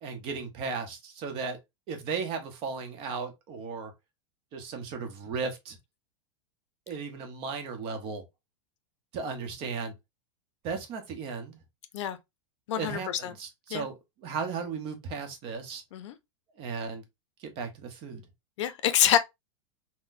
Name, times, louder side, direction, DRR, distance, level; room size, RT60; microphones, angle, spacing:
voice 1, 0.0-1.6 1.9-3.9 4.5-5.8 6.9-8.2 9.1-9.9 10.6-11.6 12.7-15.8 16.6-17.0 17.4-18.2, right 5 dB, 35° right, 0.8 m, -35 dB
voice 2, 12.7-13.3 13.7-13.9 15.9-16.1 18.6-19.2, left 11 dB, 70° left, 0.6 m, -26 dB
3.8 x 2.1 x 2.5 m
supercardioid pair, 155°, 16 cm